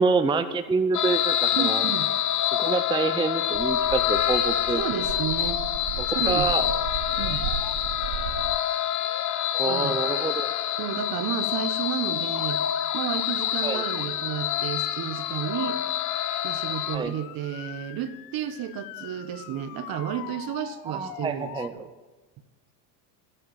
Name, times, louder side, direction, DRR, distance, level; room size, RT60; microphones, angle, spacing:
voice 1, 0.0-1.9 2.6-4.8 6.0-6.6 9.5-10.5 13.6-13.9 16.9-17.1 20.9-21.7, right 4 dB, 10° right, 9 dB, 0.6 m, -26 dB
sound 1, 0.9-17.0, left 11 dB, 40° left, 0.9 m, -27 dB
voice 2, 1.5-2.1 4.7-5.7 6.0-6.7 7.2-7.4 9.6-10.0 10.8-12.6 12.9-15.8 16.4-21.9, right 10 dB, 45° right, 12 dB, 1.2 m, -32 dB
Motor vehicle (road) / Siren, 1.8-2.7 3.0-3.6 3.9-5.3 7.1-7.7 8.0-11.0 11.4-11.9 12.3-21.7, left 13 dB, 80° left, 1.0 m, -43 dB
sound 2, 3.5-8.6, right 10 dB, 70° right, 0.8 m, -35 dB
15.5 x 8.1 x 7.6 m, 1.2 s
supercardioid pair, 100°, 48 cm